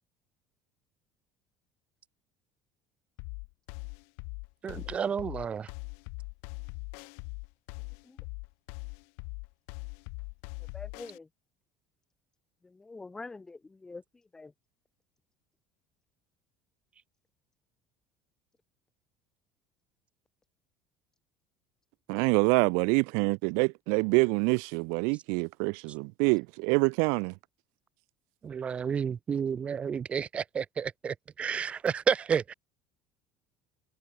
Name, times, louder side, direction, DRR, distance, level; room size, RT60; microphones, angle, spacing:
sound 1, 3.2-11.2, left 40 dB or more, 80° left, 3.2 m, -41 dB
voice 1, 4.6-5.7 28.4-32.5, right 7 dB, 25° right, 0.9 m, -31 dB
voice 2, 10.7-11.3 12.6-14.0 14.3-14.5, left 3 dB, 10° left, 1.1 m, -45 dB
voice 3, 22.1-27.3, right 39 dB, 80° right, 0.4 m, -26 dB
cardioid pair, 145°, 5 cm